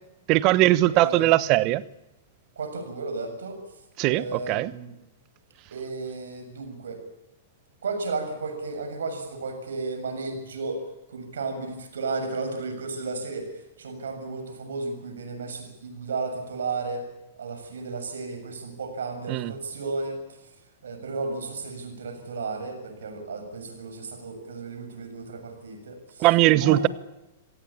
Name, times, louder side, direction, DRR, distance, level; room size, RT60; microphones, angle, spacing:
voice 1, 0.3-1.8 4.0-4.7 19.3-19.5 26.2-26.9, right 17 dB, 45° right, 1.1 m, -20 dB
voice 2, 0.9-1.3 2.6-3.6 4.1-4.9 5.7-7.0 7.8-10.8 11.1-13.5 13.8-17.0 17.4-20.4 20.8-26.3 26.6-26.9, right 3 dB, 75° right, 7.1 m, -33 dB
26.5 x 17.5 x 8.7 m
hypercardioid pair, 105°, 0 cm